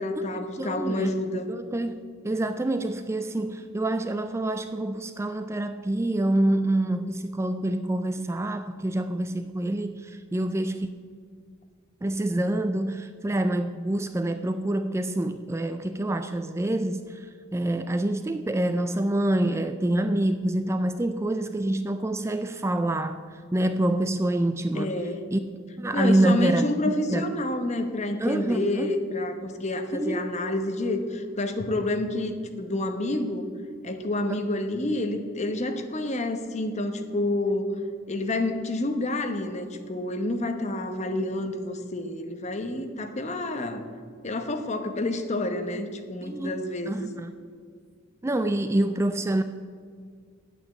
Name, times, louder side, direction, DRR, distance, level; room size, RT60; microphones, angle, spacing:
voice 1, 0.0-1.5 24.7-25.2 25.9-33.5 33.8-37.7 38.1-43.8 44.2-46.9, left 2 dB, 35° left, 7 dB, 1.0 m, -28 dB
voice 2, 0.6-1.2 1.5-10.9 12.0-25.0 25.3-25.4 25.8-27.3 28.2-28.9 29.9-30.2 46.2-46.6 46.9-47.4 48.2-49.4, right 1 dB, 15° right, 10 dB, 0.3 m, -26 dB
9.2 x 8.7 x 7.7 m, 2.1 s
head